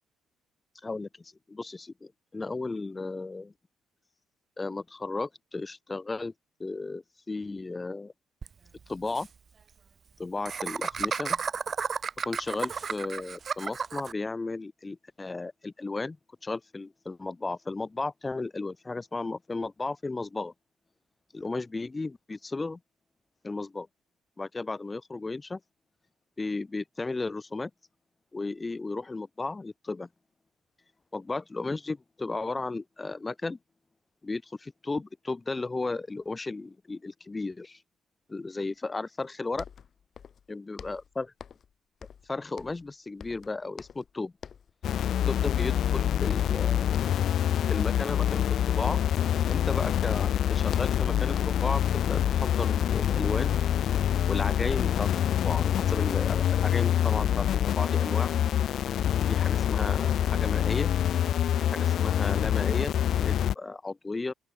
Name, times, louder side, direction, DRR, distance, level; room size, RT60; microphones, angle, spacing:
voice 1, 0.8-3.5 4.6-6.3 6.6-8.1 8.9-9.3 10.2-11.4 12.2-16.2 16.4-20.5 21.3-22.8 23.4-23.9 24.4-25.6 26.4-27.7 28.3-30.1 31.1-33.6 34.2-37.8 38.3-39.6 40.5-41.3 42.3-44.3 45.2-47.0 47.7-49.0 49.5-53.5 54.3-58.3 59.3-60.9 61.6-64.3, left 3 dB, 20° left, 1.3 m, -34 dB
Laughter, 8.4-8.5 8.8-8.9 9.1-9.3 10.5-14.1, right 6 dB, 40° right, 1.4 m, -32 dB
sound 1, 39.2-39.3 39.5-40.5 40.8-41.7 42.0-42.9 43.2-44.1 44.4-44.7 45.0-45.4 45.7-46.6 46.9-47.2 47.6-47.9 48.2-49.8 50.1-51.7, left 7 dB, 45° left, 5.2 m, -47 dB
sound 2, 44.8-63.5, left 10 dB, 65° left, 0.6 m, -26 dB
open air
cardioid pair, 115°, 0 cm